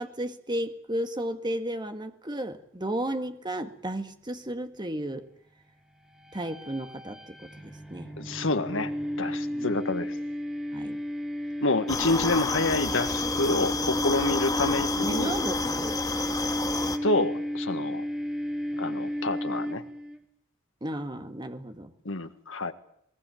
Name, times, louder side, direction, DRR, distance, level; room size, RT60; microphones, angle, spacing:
voice 1, 0.0-5.3 6.3-8.1 9.5-9.7 10.7-11.0 15.0-16.0 20.8-21.9, right 1 dB, 20° right, 8 dB, 1.8 m, -33 dB
sound 1, 6.1-20.2, equal, 5° right, 2.5 m, -33 dB
voice 2, 8.2-8.9 9.2-10.1 11.6-15.3 17.0-18.0 18.8-19.8 22.0-22.7, left 2 dB, 70° left, 9 dB, 1.7 m, -28 dB
sound 2, 11.9-17.0, left 3 dB, 20° left, 1.8 m, -30 dB
20.5 x 20.0 x 9.2 m, 0.73 s
head